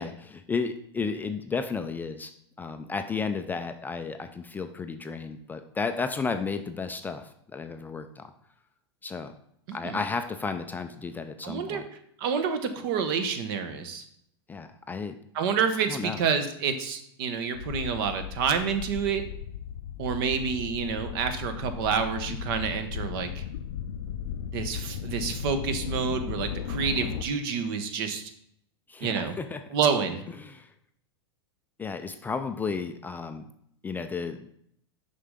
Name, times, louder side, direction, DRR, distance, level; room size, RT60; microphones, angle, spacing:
voice 1, 0.0-2.3 2.6-8.3 9.0-9.3 9.7-11.9 14.5-15.2 15.9-16.2 28.9-29.6 30.3-30.7 31.8-33.4 33.8-34.5, left 4 dB, 10° left, 8 dB, 0.4 m, -33 dB
voice 2, 9.7-10.0 11.4-11.8 12.2-14.0 15.3-19.2 20.0-23.4 24.5-28.2 29.0-29.3 29.7-30.2, right 6 dB, 55° right, 8 dB, 1.0 m, -28 dB
sound 1, 17.5-27.2, left 9 dB, 75° left, 0.5 m, -36 dB
6.7 x 5.5 x 3.6 m, 0.71 s
hypercardioid pair, 115°, 14 cm